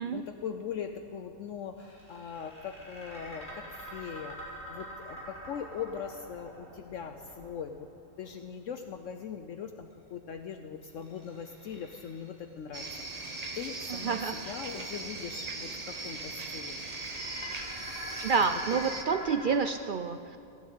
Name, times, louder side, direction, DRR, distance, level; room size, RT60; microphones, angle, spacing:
voice 1, 0.0-7.9 8.2-12.9 13.2-16.8, left 7 dB, 65° left, 7 dB, 1.0 m, -41 dB
sound 1, 1.8-8.0 10.8-12.4 12.9-14.3 15.5-19.5, left 1 dB, 50° left, 4.7 m, -45 dB
sound 2, 12.7-19.0, right 3 dB, 30° right, 1.0 m, -39 dB
voice 2, 13.9-14.6 18.2-20.4, right 5 dB, 70° right, 8 dB, 0.4 m, -29 dB
16.5 x 9.6 x 8.2 m, 2.5 s
omnidirectional pair, 1.5 m